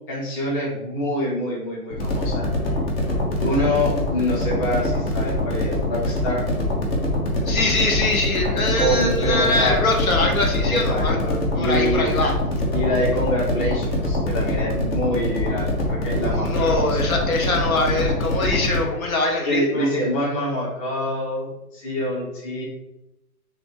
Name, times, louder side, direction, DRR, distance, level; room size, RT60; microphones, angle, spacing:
voice 1, 0.0-2.5 3.4-6.4 8.8-9.8 10.6-12.1 12.7-17.1 19.4-22.6, equal, 20° left, -3 dB, 0.9 m, -26 dB
sound 1, 1.9-18.8, left 1 dB, 40° left, 1.1 m, -24 dB
voice 2, 7.5-12.3 16.3-19.9, left 2 dB, 65° left, 1 dB, 1.0 m, -23 dB
3.4 x 2.6 x 4.5 m, 0.87 s
hypercardioid pair, 140°, 47 cm